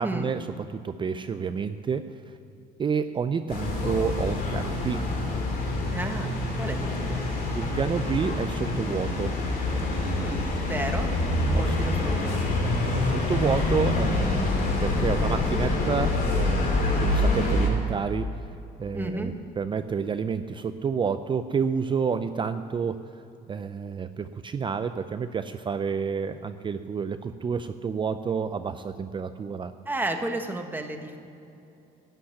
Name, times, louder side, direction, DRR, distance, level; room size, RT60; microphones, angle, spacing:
voice 1, 0.0-2.4 2.8-5.1 7.5-9.4 11.5-11.8 12.9-18.3 18.8-23.0 23.5-29.7, right 6 dB, 30° right, 10 dB, 0.5 m, -29 dB
sound 1, 3.5-17.7, left 2 dB, 60° left, 2.9 m, -26 dB
voice 2, 5.9-7.4 10.2-11.1 11.5-12.4 18.9-19.3 29.8-31.2, right 2 dB, 10° right, 4 dB, 1.4 m, -33 dB
11.5 x 9.1 x 9.9 m, 2.8 s
cardioid pair, 110°, 17 cm